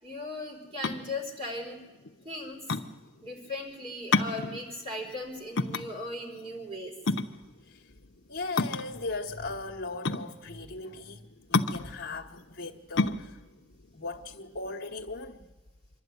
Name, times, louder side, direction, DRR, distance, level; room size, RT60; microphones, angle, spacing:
voice 1, 0.0-1.8 2.2-2.6 3.2-6.9, left 1 dB, 30° right, 4.3 m, -37 dB
sound 1, 0.6-15.0, left 3 dB, 65° left, 0.8 m, -31 dB
voice 2, 8.3-13.4 13.9-15.5, left 3 dB, 50° left, 1.1 m, -38 dB
25.5 x 11.5 x 9.5 m
head